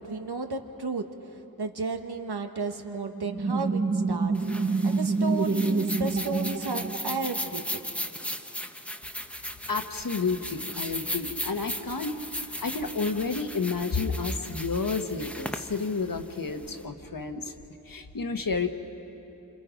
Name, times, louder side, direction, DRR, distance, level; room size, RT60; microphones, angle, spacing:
voice 1, 0.0-4.3 4.6-7.8, right 3 dB, 85° right, 5 dB, 1.4 m, -34 dB
sound 1, 3.2-7.6, right 3 dB, 30° right, 0.8 m, -27 dB
sound 2, 4.3-16.8, equal, 5° left, 0.8 m, -37 dB
voice 2, 9.7-12.2 12.6-17.5 17.9-18.7, left 4 dB, 60° left, 6 dB, 1.3 m, -30 dB
28.0 x 27.0 x 5.2 m, 3.0 s
wide cardioid pair, 70°, 38 cm